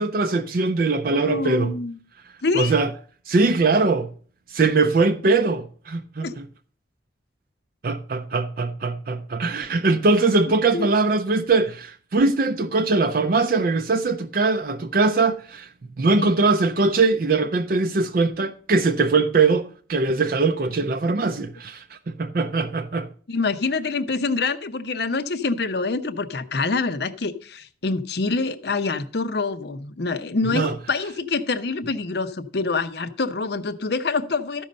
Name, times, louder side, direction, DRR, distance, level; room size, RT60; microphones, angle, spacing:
voice 1, 0.0-1.8 2.6-2.9 3.3-4.1 4.5-6.4 7.8-15.7 16.0-23.1 30.5-30.7, right 3 dB, 50° right, 0.5 m, -21 dB
voice 2, 1.1-2.0 2.4-2.7 6.2-6.3 10.7-10.9 16.2-16.3 23.3-34.6, left 4 dB, 60° left, 0.7 m, -26 dB
13.0 x 5.4 x 5.1 m
head